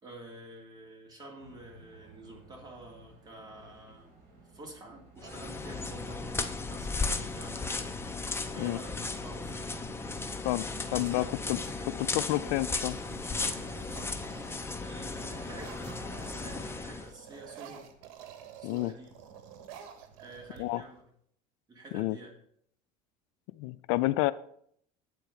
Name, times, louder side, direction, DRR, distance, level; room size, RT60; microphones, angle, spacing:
voice 1, 0.0-4.2 4.5-7.9 8.5-9.7 10.9-11.9 14.7-17.9 18.6-19.1 20.2-21.1 21.7-22.3, right 1 dB, 25° right, -1 dB, 3.0 m, -49 dB
sound 1, 1.4-21.0, right 3 dB, 55° right, 3.4 m, -58 dB
sound 2, 5.2-17.1, left 3 dB, 15° left, 0.8 m, -36 dB
sound 3, 5.2-6.1 7.8-7.9 8.3-8.8 9.3-10.8 11.5-11.9 12.2-16.8 17.0-21.0, right 9 dB, 85° right, 1.2 m, -51 dB
voice 2, 10.9-11.6 12.1-13.0 18.6-18.9 20.6-20.8 21.9-22.2 23.6-24.3, left 18 dB, 80° left, 16 dB, 0.4 m, -29 dB
8.3 x 4.6 x 7.1 m, 0.66 s
supercardioid pair, 115°, 17 cm